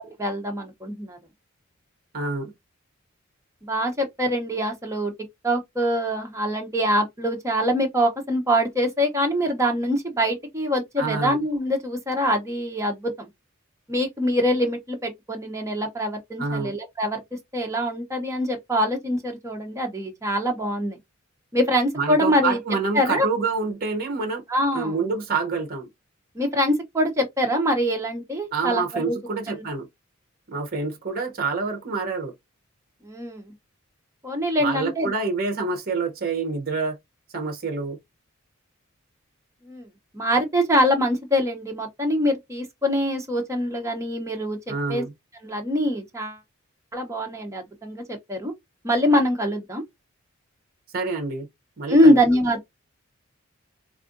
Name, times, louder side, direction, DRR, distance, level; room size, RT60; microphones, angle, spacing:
voice 1, 0.2-1.2 3.6-5.1 5.4-13.3 13.9-17.2 17.5-21.0 21.5-22.6 22.9-23.3 24.5-24.9 26.3-29.2 29.5-29.6 33.0-33.5 34.2-35.1 39.7-39.9 40.1-44.6 44.9-45.0 45.4-46.4 46.9-48.5 48.8-49.8 51.9-52.6, equal, 15° right, 0.8 m, -24 dB
voice 2, 2.1-2.5 11.0-11.4 16.4-16.8 22.0-24.4 24.7-25.9 28.5-29.9 30.5-32.3 34.6-37.0 37.3-38.0 44.7-45.1 50.9-51.5 51.8-52.2, right 4 dB, 45° right, 0.8 m, -27 dB
3.5 x 2.5 x 2.5 m
head